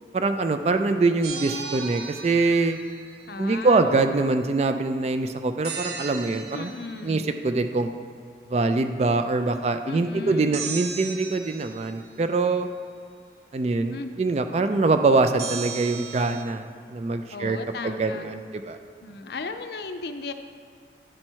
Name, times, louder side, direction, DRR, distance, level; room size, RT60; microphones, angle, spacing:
voice 1, 0.1-2.8 3.4-6.7 7.0-7.9 8.5-12.7 13.5-16.6 16.9-17.6 17.8-18.8, right 3 dB, 35° right, 7 dB, 0.3 m, -24 dB
sound 1, 1.2-3.4 5.6-7.1 10.5-12.2 15.4-16.4, right 6 dB, 65° right, 0.7 m, -36 dB
voice 2, 3.3-4.0 6.5-7.3 9.8-10.7 13.9-14.1 17.3-18.3 19.0-20.3, left 3 dB, 65° left, 8 dB, 0.5 m, -36 dB
10.5 x 4.4 x 4.5 m, 2.2 s
head